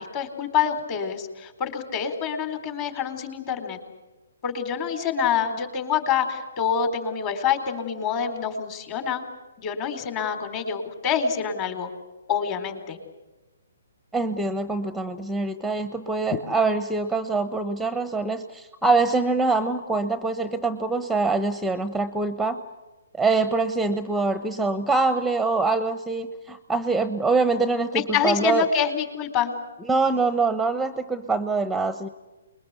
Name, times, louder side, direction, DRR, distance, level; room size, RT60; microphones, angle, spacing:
voice 1, 0.0-3.8 4.4-9.2 9.6-11.9 12.3-13.0 16.3-16.4 27.9-29.5, left 7 dB, 30° left, 7 dB, 4.1 m, -26 dB
voice 2, 14.1-22.6 23.2-28.6 29.9-32.1, right 3 dB, 5° right, 11 dB, 1.0 m, -24 dB
28.5 x 21.5 x 8.3 m, 1.1 s
hypercardioid pair, 140°, 0 cm